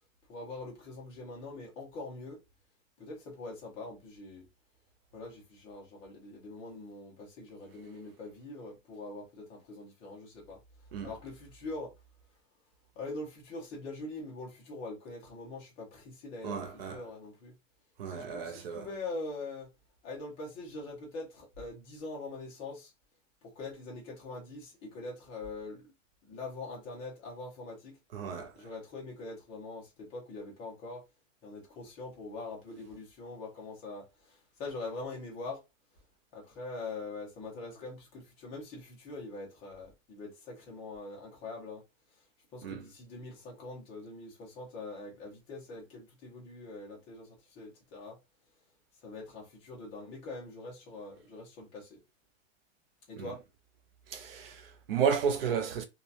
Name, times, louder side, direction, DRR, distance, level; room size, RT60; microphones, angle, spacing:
voice 1, 0.3-2.4 3.0-4.5 5.1-10.6 11.0-11.9 13.0-17.5 18.1-19.7 20.0-22.9 23.4-25.9 26.3-28.0 28.5-31.0 31.4-35.6 36.3-41.8 42.5-48.2 49.0-52.0 53.1-53.4, left 2 dB, 15° left, 0.6 m, -43 dB
voice 2, 16.4-17.0 18.0-18.9 28.1-28.5 42.6-42.8 53.2-53.3 54.1-55.8, right 7 dB, 50° right, 0.5 m, -32 dB
2.8 x 2.2 x 2.4 m
supercardioid pair, 170°, 39 cm